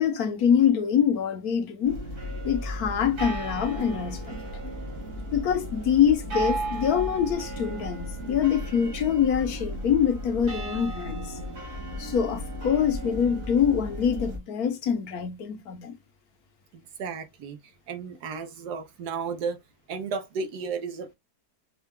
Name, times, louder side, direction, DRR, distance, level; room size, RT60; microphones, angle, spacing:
voice 1, 0.0-2.0 2.4-4.4 5.3-11.4 12.0-15.9, left 8 dB, 70° left, 1.3 m, -25 dB
sound 1, 1.8-14.4, right 1 dB, 55° right, 2.1 m, -34 dB
voice 2, 16.7-17.6 17.9-19.6 19.9-21.1, right 5 dB, 85° right, 1.5 m, -34 dB
5.5 x 2.3 x 3.6 m
omnidirectional pair, 1.7 m